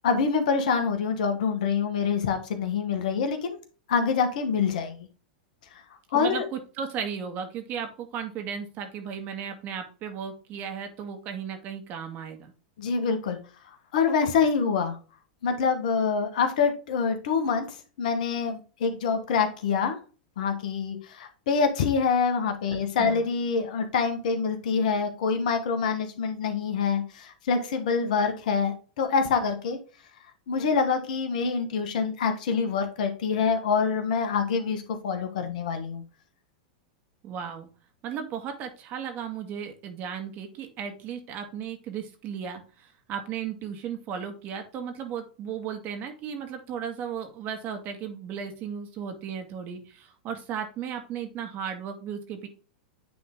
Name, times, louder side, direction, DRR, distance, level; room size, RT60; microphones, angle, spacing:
voice 1, 0.0-3.5 3.9-5.0 6.1-6.4 12.8-13.4 13.9-15.0 15.4-17.6 18.0-20.0 20.4-29.8 30.5-36.0, left 5 dB, 65° left, 7 dB, 1.5 m, -26 dB
voice 2, 6.1-12.5 22.7-23.2 37.2-37.7 38.0-52.5, right 7 dB, 40° right, 5 dB, 2.0 m, -35 dB
9.4 x 3.8 x 3.7 m, 0.36 s
hypercardioid pair, 100°, 5 cm